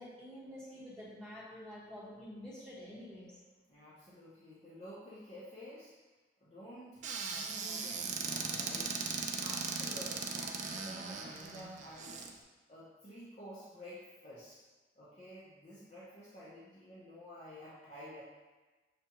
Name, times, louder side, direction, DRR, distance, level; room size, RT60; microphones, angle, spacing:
voice 1, 0.0-3.4, left 1 dB, 5° left, -10 dB, 1.2 m, -48 dB
voice 2, 3.7-5.9 6.4-9.1 9.4-12.3 12.7-14.6 15.0-18.2, equal, 40° left, -9 dB, 0.6 m, -51 dB
Squeak / Cupboard open or close, 7.0-12.3, right 5 dB, 40° right, 0.3 m, -38 dB
6.6 x 2.4 x 2.8 m, 1.3 s
head